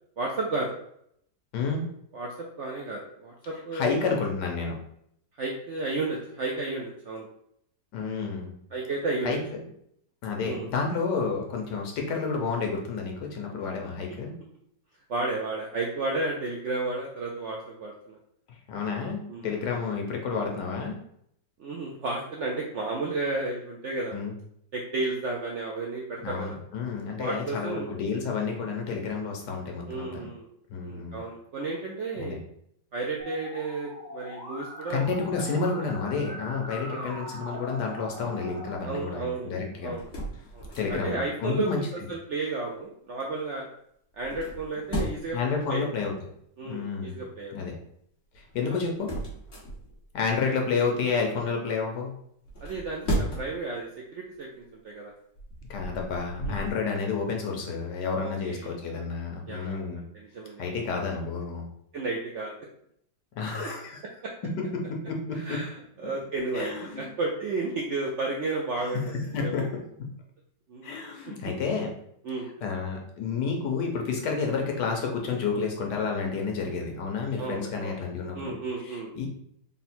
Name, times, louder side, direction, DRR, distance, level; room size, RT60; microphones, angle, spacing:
voice 1, 0.2-0.7 2.1-4.0 5.4-7.3 8.7-9.4 10.4-10.7 15.1-18.2 19.3-19.5 21.6-24.1 24.7-26.6 27.2-27.9 29.9-30.5 30.8-32.4 32.9-35.0 35.4-35.6 36.9-37.2 38.8-39.5 39.8-40.2 40.5-43.7 44.1-45.8 46.6-47.5 48.6-48.8 52.6-55.1 56.4-56.7 58.2-58.7 59.5-60.6 61.9-62.5 63.6-63.7 64.2-64.3 65.3-69.2 69.4-69.7 70.7-70.9 71.3-71.5 72.2-72.5 77.4-78.0 78.3-79.1, right 3 dB, 70° right, -1 dB, 0.6 m, -33 dB
voice 2, 1.5-1.8 3.7-4.8 7.9-8.5 9.2-9.4 10.2-14.3 18.7-21.0 24.1-24.3 26.2-30.3 30.7-31.2 32.2-32.4 34.9-39.9 40.8-41.8 45.3-46.1 46.6-47.2 47.5-47.8 48.3-49.1 50.1-52.1 55.7-60.0 60.6-61.7 63.4-64.0 64.7-65.6 66.5-67.1 68.8-70.1 70.8-71.9 72.6-78.5 78.9-79.3, left 5 dB, 80° left, 1 dB, 1.4 m, -30 dB
Musical instrument, 33.2-38.8, left 1 dB, 15° left, 0.7 m, -41 dB
sound 1, 39.9-41.2 44.1-45.4 48.3-50.1 52.4-53.7 54.2-54.4 55.2-56.7, right 1 dB, 40° left, 1.3 m, -34 dB
4.0 x 2.1 x 4.2 m, 0.71 s
omnidirectional pair, 1.8 m